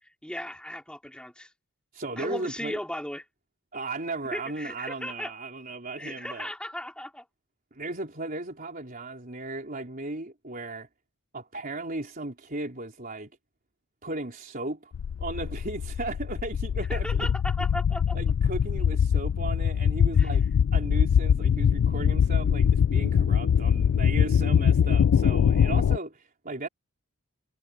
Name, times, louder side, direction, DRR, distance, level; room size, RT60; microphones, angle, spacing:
voice 1, 0.0-1.5 2.2-3.2 4.2-5.3 6.0-7.2 16.9-18.2 20.2-20.3, left 1 dB, 5° left, 4.1 m, -36 dB
voice 2, 1.9-2.8 3.7-6.5 7.7-10.9 11.3-13.3 14.0-14.9 15.2-17.3 18.1-20.5 20.7-26.7, right 2 dB, 40° right, 4.0 m, -36 dB
sound 1, 14.9-26.0, left 7 dB, 70° left, 0.3 m, -23 dB
head